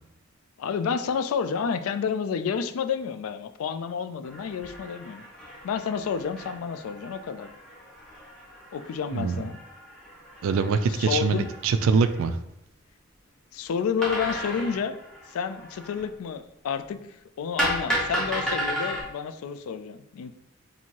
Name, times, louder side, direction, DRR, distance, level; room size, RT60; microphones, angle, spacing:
voice 1, 0.6-5.3 5.6-7.5 8.7-9.6 10.9-11.5 13.5-14.9 15.3-17.0 17.4-20.3, left 6 dB, 80° left, 10 dB, 0.3 m, -30 dB
sound 1, 4.2-12.3 14.0-16.1 17.6-19.0, equal, 5° left, 0.9 m, -34 dB
voice 2, 10.4-12.4, right 5 dB, 70° right, 11 dB, 0.3 m, -23 dB
4.4 x 2.7 x 2.9 m, 0.85 s
head